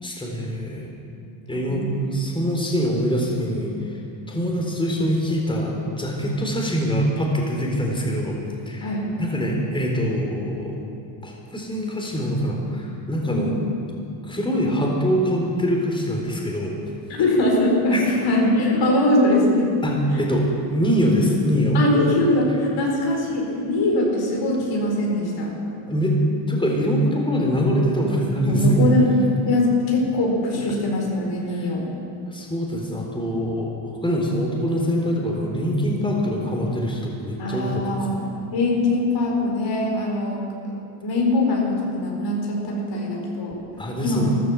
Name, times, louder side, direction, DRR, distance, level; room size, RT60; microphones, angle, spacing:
voice 1, 0.0-0.9 1.5-4.0 4.3-8.3 8.7-8.9 9.2-10.8 11.2-13.5 14.2-16.8 17.9-18.0 19.8-21.8 25.9-26.2 26.5-28.9 32.3-33.7 34.0-38.0 43.8-44.3, equal, 10° left, -2 dB, 4.0 m, -23 dB
voice 2, 1.5-1.9 8.8-9.0 13.3-13.4 17.2-19.7 20.1-20.2 21.7-25.5 28.4-29.1 29.4-31.9 37.4-38.2 38.5-40.4 41.0-43.6 44.0-44.3, left 1 dB, 60° left, -1 dB, 4.6 m, -22 dB
14.5 x 12.0 x 7.2 m, 2.5 s
supercardioid pair, 75°, 48 cm